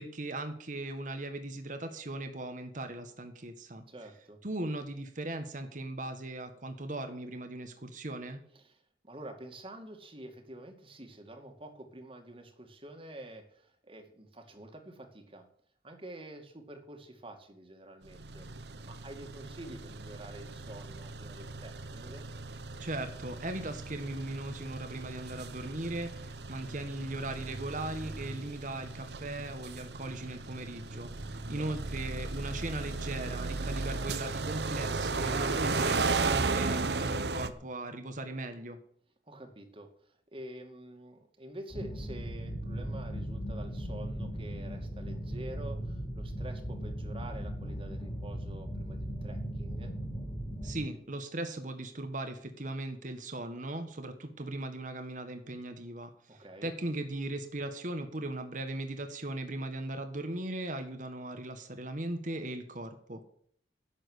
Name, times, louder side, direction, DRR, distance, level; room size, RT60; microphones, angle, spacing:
voice 1, 0.0-3.8 4.4-8.4 22.8-38.8 50.6-63.2, right 2 dB, 45° right, 7 dB, 1.5 m, -38 dB
voice 2, 3.9-4.4 8.5-15.4 15.8-22.3 31.4-31.8 39.3-49.9 56.3-56.7, right 1 dB, 30° right, 5 dB, 2.3 m, -48 dB
sound 1, 18.1-37.5, right 3 dB, 70° right, 1.0 m, -36 dB
sound 2, 41.7-50.9, equal, 25° left, 3.7 m, -38 dB
11.5 x 7.6 x 9.8 m, 0.62 s
head